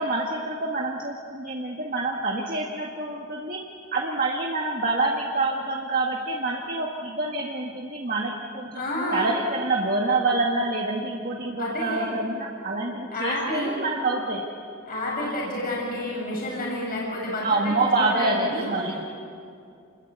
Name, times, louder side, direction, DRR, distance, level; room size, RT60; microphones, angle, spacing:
voice 1, 0.0-3.6 3.9-8.8 9.1-14.4 17.4-19.0, right 2 dB, 40° right, -1 dB, 1.8 m, -26 dB
voice 2, 8.8-9.2 11.6-12.1 13.1-13.8 14.9-19.0, left 1 dB, 45° left, -3 dB, 7.0 m, -30 dB
29.0 x 21.5 x 8.3 m, 2.5 s
head